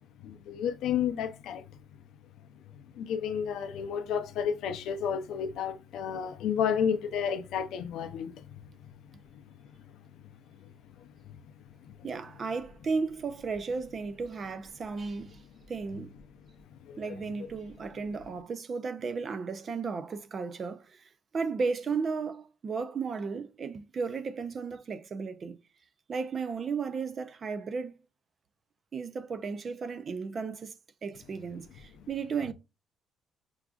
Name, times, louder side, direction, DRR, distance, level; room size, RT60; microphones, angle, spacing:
voice 1, 0.2-1.6 3.0-8.3 11.3-11.4 16.9-17.2, left 8 dB, 70° left, 0.5 m, -31 dB
voice 2, 12.0-15.4 15.7-16.1 17.0-25.6 26.1-27.9 28.9-30.7 31.0-32.5, right 5 dB, 30° right, 0.3 m, -34 dB
5.9 x 2.4 x 2.3 m
cardioid pair, 175°, 0 cm